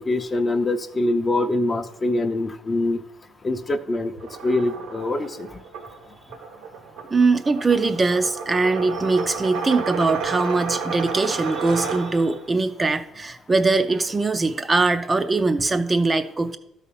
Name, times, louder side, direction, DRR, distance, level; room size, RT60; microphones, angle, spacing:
voice 1, 0.0-3.0 3.4-4.1 4.4-5.5, left 2 dB, 25° left, 8 dB, 0.6 m, -24 dB
sound 1, 4.2-12.5, right 5 dB, 85° right, 1.3 m, -32 dB
voice 2, 7.1-16.6, right 3 dB, 20° right, 8 dB, 0.5 m, -21 dB
12.0 x 4.2 x 5.6 m, 0.84 s
cardioid pair, 125°, 0 cm